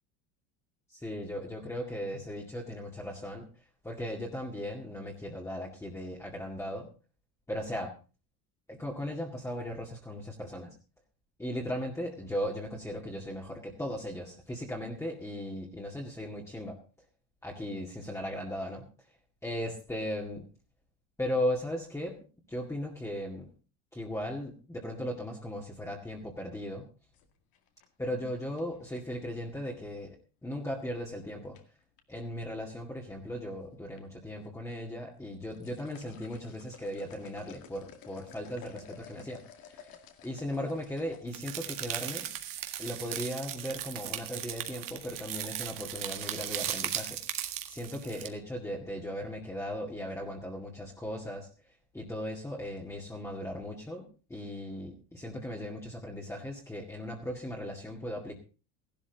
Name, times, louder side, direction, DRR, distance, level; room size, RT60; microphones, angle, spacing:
voice 1, 0.9-3.5 3.8-6.9 7.5-7.9 8.7-10.7 11.4-16.8 17.4-18.9 19.4-20.5 21.2-22.2 22.5-23.5 23.9-26.9 28.0-31.6 32.1-40.0 40.2-42.3 42.8-47.2 47.7-51.5 51.9-58.3, left 1 dB, 5° left, -2 dB, 2.1 m, -37 dB
sound 1, 27.1-29.3 30.8-31.1 31.5-32.0 32.9-33.5 33.8-34.0 34.4-34.5 35.2-41.2, left 8 dB, 60° left, 2.3 m, -53 dB
sound 2, 41.3-48.3, right 11 dB, 55° right, 1.9 m, -37 dB
15.0 x 12.0 x 4.0 m, 0.35 s
cardioid pair, 125°, 40 cm